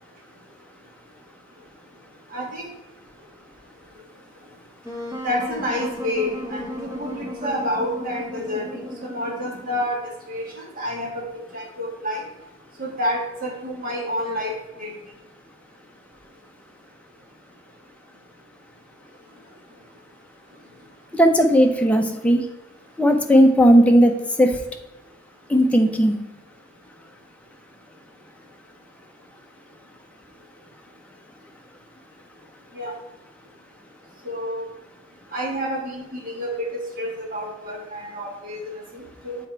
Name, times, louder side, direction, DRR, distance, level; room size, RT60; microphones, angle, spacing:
voice 1, 2.3-2.7 5.2-10.0 10.3-12.2 12.8-14.9 32.7-32.9 34.2-34.6 35.3-39.4, equal, 40° right, 0 dB, 1.7 m, -29 dB
Wind instrument woodwind instrument, 4.8-9.9, equal, 15° right, 1.2 m, -34 dB
voice 2, 21.1-22.4 23.0-24.6 25.5-26.2, equal, 5° left, 3 dB, 0.6 m, -16 dB
7.2 x 4.4 x 4.6 m, 1.0 s
head